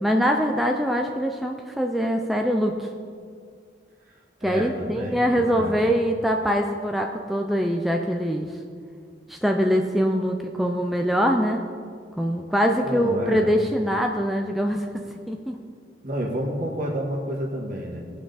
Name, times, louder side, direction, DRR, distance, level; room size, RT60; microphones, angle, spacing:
voice 1, 0.0-2.9 4.4-8.5 9.3-11.6 12.2-15.6, equal, ahead, 2 dB, 0.5 m, -23 dB
voice 2, 4.4-5.8 12.8-13.5 16.0-18.0, equal, 50° right, -2 dB, 1.8 m, -30 dB
18.0 x 6.0 x 4.0 m, 2.1 s
head